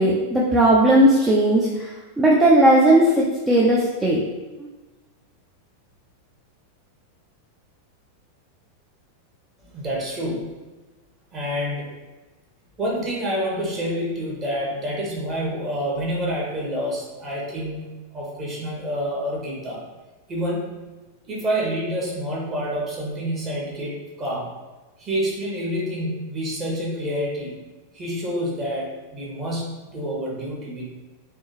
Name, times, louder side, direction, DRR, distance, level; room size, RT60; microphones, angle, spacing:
voice 1, 0.0-4.2, right 1 dB, 10° right, -5 dB, 0.5 m, -17 dB
voice 2, 9.6-10.5 11.3-11.9 12.8-17.8 18.1-19.8 20.3-20.8 21.3-24.5 25.0-27.6 27.9-30.8, equal, 30° right, -4 dB, 1.3 m, -28 dB
3.5 x 3.1 x 2.8 m, 1.2 s
figure-of-eight pair, 90°, 0 cm